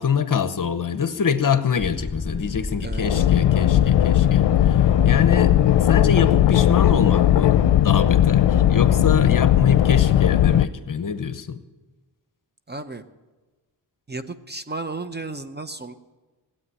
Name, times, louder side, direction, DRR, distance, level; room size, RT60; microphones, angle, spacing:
voice 1, 0.0-11.6, left 6 dB, 50° left, 11 dB, 0.9 m, -25 dB
sound 1, 1.8-9.7, left 4 dB, 10° left, 2.9 m, -33 dB
voice 2, 2.8-3.3 12.7-13.0 14.1-15.9, right 3 dB, 25° right, 9 dB, 0.8 m, -34 dB
sound 2, 3.0-10.7, left 11 dB, 85° left, 0.6 m, -17 dB
16.5 x 8.6 x 9.8 m, 1.2 s
wide cardioid pair, 105°, 42 cm